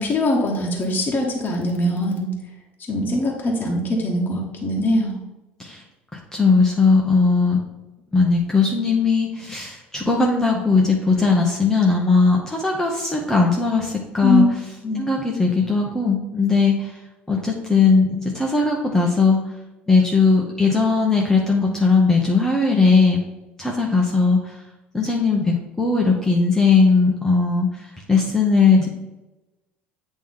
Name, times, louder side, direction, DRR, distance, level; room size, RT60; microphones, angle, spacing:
voice 1, 0.0-2.3 2.9-5.1 14.2-14.5 14.8-15.0, left 1 dB, 30° left, -2 dB, 1.3 m, -22 dB
voice 2, 6.1-7.6 8.1-14.4 14.9-17.0 17.3-19.4 19.9-23.2 23.6-24.5 24.9-27.7 28.1-28.9, left 4 dB, 10° left, -2 dB, 1.0 m, -18 dB
8.5 x 3.1 x 3.7 m, 1.0 s
hypercardioid pair, 65°, 6 cm